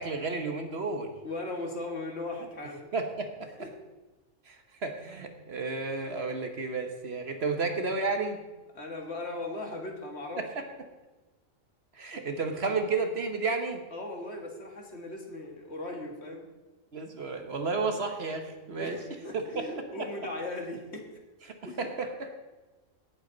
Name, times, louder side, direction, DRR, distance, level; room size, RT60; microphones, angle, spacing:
voice 1, 0.0-1.1 2.9-3.3 4.5-4.6 4.8-8.4 10.6-10.7 12.0-13.8 16.9-19.0 19.5-19.6 21.8-22.3, right 3 dB, 55° right, 5 dB, 1.3 m, -32 dB
voice 2, 1.2-2.9 3.6-3.7 8.7-10.5 13.9-16.5 18.7-21.1 21.6-21.9, left 2 dB, 55° left, 1 dB, 2.1 m, -38 dB
17.5 x 8.7 x 4.0 m, 1.1 s
omnidirectional pair, 1.4 m